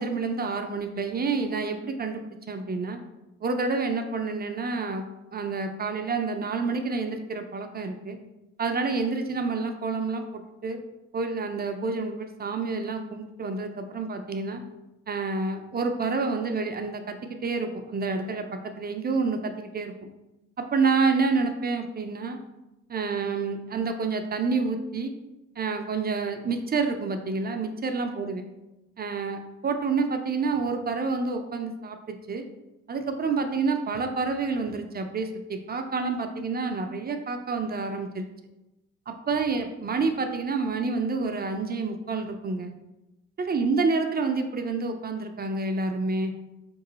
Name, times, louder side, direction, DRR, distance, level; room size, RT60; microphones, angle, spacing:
voice 1, 0.0-3.0 3.4-5.1 5.3-8.2 8.6-10.8 11.1-14.6 15.1-19.9 20.6-22.4 22.9-25.1 25.6-28.4 29.0-32.5 32.9-38.3 39.1-42.7 43.4-46.3, right 4 dB, 30° right, 6 dB, 0.4 m, -28 dB
3.6 x 3.0 x 3.9 m, 0.98 s
cardioid pair, 90°, 30 cm